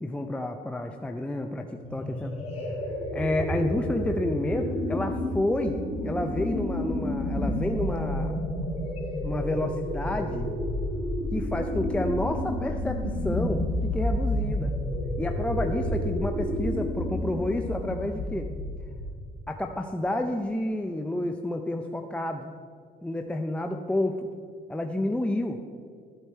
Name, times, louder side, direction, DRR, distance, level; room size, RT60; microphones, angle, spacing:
voice 1, 0.0-2.3 3.1-8.4 9.2-10.5 11.3-14.7 15.2-18.5 19.5-22.5 23.0-24.3 24.7-25.6, left 1 dB, 5° left, 4 dB, 0.5 m, -30 dB
sound 1, 1.8-19.3, left 1 dB, 35° left, 3.2 m, -30 dB
13.0 x 8.1 x 4.3 m, 2.2 s
cardioid pair, 110°, 17 cm